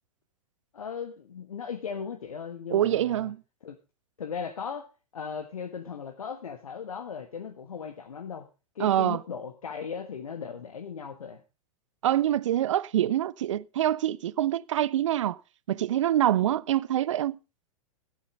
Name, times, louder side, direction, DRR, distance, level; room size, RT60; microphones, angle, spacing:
voice 1, 0.7-3.3 3.6-3.8 4.2-8.5 8.7-11.4, left 6 dB, 70° left, 1.4 m, -37 dB
voice 2, 2.7-3.4 8.8-9.2 12.0-15.4 15.7-17.4, right 12 dB, 55° right, 0.6 m, -25 dB
15.5 x 8.2 x 5.1 m
figure-of-eight pair, 100°, 19 cm